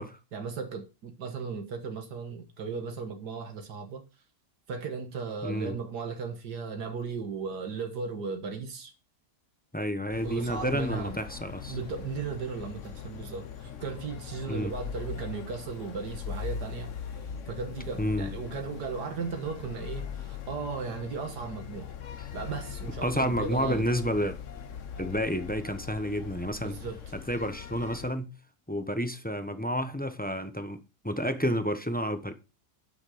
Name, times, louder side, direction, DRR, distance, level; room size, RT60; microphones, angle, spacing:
voice 1, 0.3-4.0 4.7-8.9 10.2-11.2 11.7-16.9 17.5-21.9 22.3-23.9 26.6-27.0, right 5 dB, 80° right, 2.1 m, -36 dB
voice 2, 5.4-5.7 9.7-11.8 14.5-14.7 18.0-18.3 23.0-24.4 25.0-26.8 27.1-28.3 28.7-32.3, equal, 10° left, 0.7 m, -30 dB
sound 1, 10.1-28.1, left 7 dB, 55° left, 1.3 m, -40 dB
11.5 x 6.5 x 5.0 m
omnidirectional pair, 1.7 m